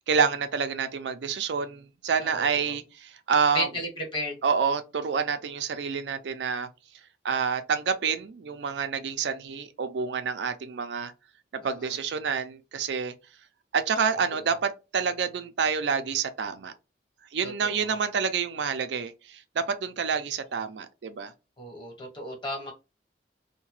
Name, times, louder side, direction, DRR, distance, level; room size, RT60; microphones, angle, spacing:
voice 1, 0.0-3.7 4.4-6.7 7.2-11.1 11.5-13.1 13.7-16.7 17.3-21.3, right 6 dB, 75° right, 0.4 m, -28 dB
voice 2, 2.2-2.7 3.5-4.4 11.6-11.9 17.4-17.9 21.6-22.7, left 1 dB, 30° left, 1.2 m, -34 dB
2.8 x 2.1 x 3.0 m
head